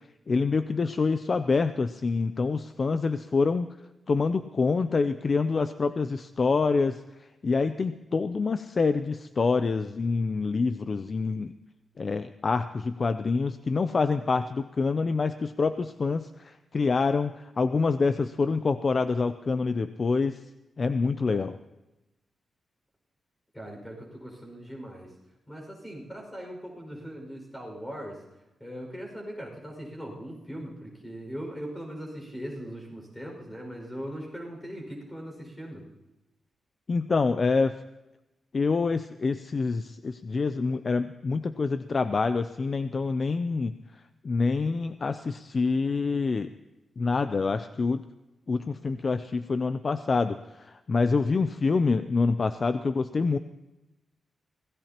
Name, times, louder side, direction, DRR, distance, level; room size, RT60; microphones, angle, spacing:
voice 1, 0.3-3.7 4.1-7.0 7.4-11.5 12.0-20.4 20.8-21.6 36.9-37.7 38.5-43.7 44.2-46.5 47.0-48.0 48.5-53.4, left 4 dB, 40° left, 11 dB, 0.4 m, -26 dB
voice 2, 23.5-25.1 25.5-28.2 28.6-35.8, equal, 10° left, 0 dB, 5.5 m, -40 dB
26.0 x 17.0 x 2.9 m, 1.0 s
wide cardioid pair, 135°, 0 cm